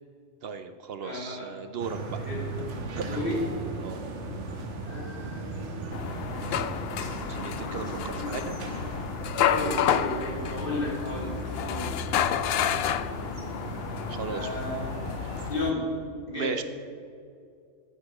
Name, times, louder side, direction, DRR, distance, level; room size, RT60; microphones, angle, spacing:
voice 1, 0.4-2.2 3.0-3.2 3.8-4.0 7.3-8.6 9.6-9.9 12.5-13.0 14.1-14.6 15.2-15.4 16.3-16.6, right 5 dB, 65° right, 10 dB, 0.8 m, -36 dB
voice 2, 1.0-1.5 2.2-2.4 3.0-3.4 4.8-5.8 8.1-8.4 9.4-11.3 11.6-11.9 14.2-14.9 15.5-15.9 16.3-16.5, left 2 dB, 50° left, -4 dB, 3.1 m, -33 dB
sound 1, 1.8-15.5, right 3 dB, 85° right, 1.5 m, -37 dB
sound 2, 5.9-15.7, left 9 dB, 65° left, 0.7 m, -30 dB
9.4 x 8.6 x 5.9 m, 2.3 s
omnidirectional pair, 1.2 m